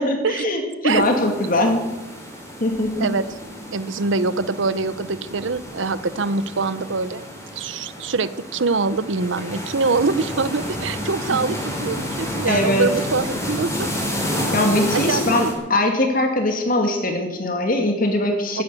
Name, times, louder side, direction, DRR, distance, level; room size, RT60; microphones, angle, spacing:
voice 1, 0.0-1.8 2.6-3.1 11.3-11.4 12.5-12.9 14.5-18.6, left 1 dB, 45° left, 3 dB, 2.6 m, -21 dB
sound 1, 0.9-15.5, equal, 15° left, 4.0 m, -30 dB
voice 2, 3.7-7.2 7.6-13.9 14.9-15.5 18.5-18.6, right 4 dB, 75° right, 16 dB, 0.8 m, -24 dB
15.0 x 10.5 x 8.4 m, 1.1 s
head